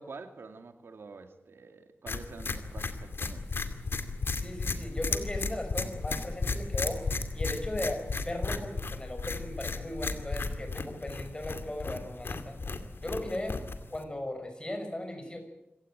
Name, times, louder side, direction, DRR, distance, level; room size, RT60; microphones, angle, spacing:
voice 1, 0.0-3.6, right 4 dB, 85° right, 8 dB, 2.5 m, -47 dB
sound 1, 2.1-14.0, left 3 dB, 75° left, 2.3 m, -34 dB
voice 2, 4.4-7.0 7.3-12.6 13.0-13.6 13.9-15.4, left 1 dB, 25° left, 6 dB, 6.1 m, -37 dB
26.5 x 16.5 x 9.0 m, 0.87 s
wide cardioid pair, 105°, 4 cm